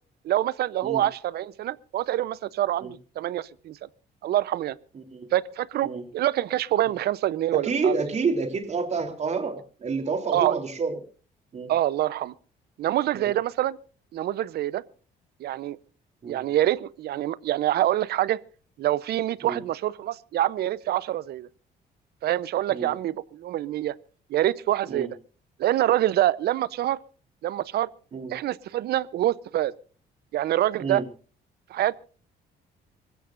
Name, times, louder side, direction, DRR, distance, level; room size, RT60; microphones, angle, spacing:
voice 1, 0.2-3.9 4.2-4.8 5.3-8.0 10.3-10.6 11.7-12.3 12.8-13.8 14.1-14.8 15.4-15.8 16.3-18.4 18.8-21.5 22.2-23.9 24.3-25.2 25.6-27.0 27.4-27.9 28.3-29.7 30.3-31.0 31.7-32.0, right 13 dB, 65° right, 0.8 m, -26 dB
voice 2, 4.9-5.3 5.8-6.0 7.5-11.0 11.5-11.7 13.1-13.3 16.2-16.5 19.4-19.6 22.7-22.9 24.9-25.1 28.1-28.3 30.8-31.0, right 4 dB, 40° right, 3.4 m, -29 dB
26.0 x 15.5 x 2.6 m
cardioid pair, 130°, 18 cm